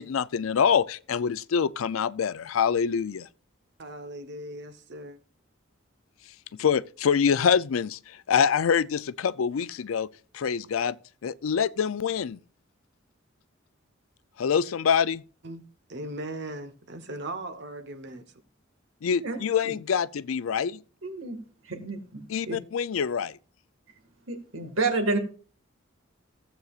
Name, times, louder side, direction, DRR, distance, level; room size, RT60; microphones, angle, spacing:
voice 1, 0.0-3.3 6.6-10.1 10.3-11.0 11.2-12.4 14.4-15.2 19.0-20.8 22.3-23.4, left 7 dB, 90° left, 0.4 m, -25 dB
voice 2, 3.8-5.2 15.4-18.3, right 1 dB, 60° right, 1.0 m, -38 dB
voice 3, 21.0-21.4 21.7-22.6 24.3-25.2, right 3 dB, 90° right, 1.8 m, -30 dB
15.5 x 7.9 x 2.4 m
head